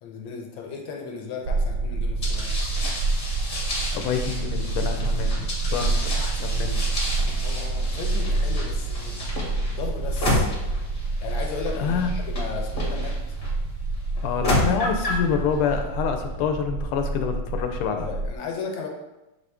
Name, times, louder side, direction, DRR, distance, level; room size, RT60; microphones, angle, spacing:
voice 1, 0.0-2.6 7.4-9.2 9.7-10.5 11.2-13.4 17.9-18.9, left 5 dB, 75° left, 1 dB, 1.4 m, -35 dB
sound 1, 1.4-18.4, right 3 dB, 75° right, 1.2 m, -28 dB
sound 2, 2.2-13.5 14.2-15.3, left 1 dB, 40° left, 1.0 m, -31 dB
voice 2, 3.9-6.9 11.7-12.1 14.2-18.1, left 7 dB, 90° left, 5 dB, 1.5 m, -27 dB
6.1 x 2.5 x 3.4 m, 0.99 s
omnidirectional pair, 2.3 m